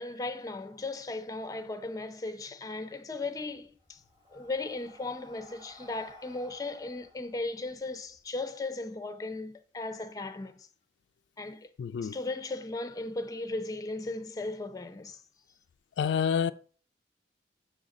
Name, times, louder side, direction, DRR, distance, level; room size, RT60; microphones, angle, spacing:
voice 1, 0.0-4.0 4.3-10.7 11.4-11.7 12.0-15.2, left 2 dB, 20° left, 0.5 m, -37 dB
Breathing, 3.5-8.2, left 1 dB, 25° right, 1.1 m, -55 dB
voice 2, 11.8-12.2 16.0-16.5, left 7 dB, 90° left, 0.3 m, -28 dB
6.4 x 4.0 x 4.9 m
head